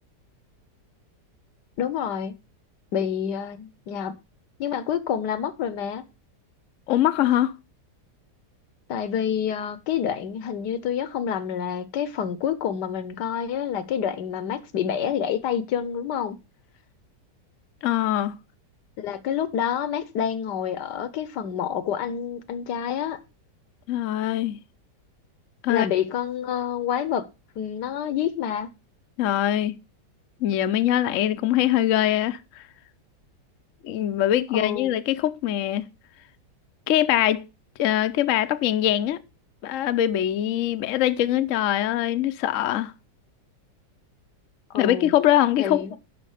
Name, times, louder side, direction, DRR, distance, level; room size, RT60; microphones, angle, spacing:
voice 1, 1.8-2.3 2.9-4.1 4.6-6.0 8.9-16.4 19.0-23.2 25.7-27.3 27.6-28.7 34.5-34.9 44.7-45.1 45.6-46.0, left 8 dB, 80° left, 1.4 m, -28 dB
voice 2, 6.9-7.5 17.8-18.4 23.9-24.6 25.6-25.9 29.2-29.8 30.4-32.6 33.8-35.8 36.9-37.5 37.8-39.2 39.6-42.9 44.8-45.9, left 12 dB, 60° left, 0.8 m, -23 dB
12.0 x 5.2 x 4.9 m
omnidirectional pair, 1.8 m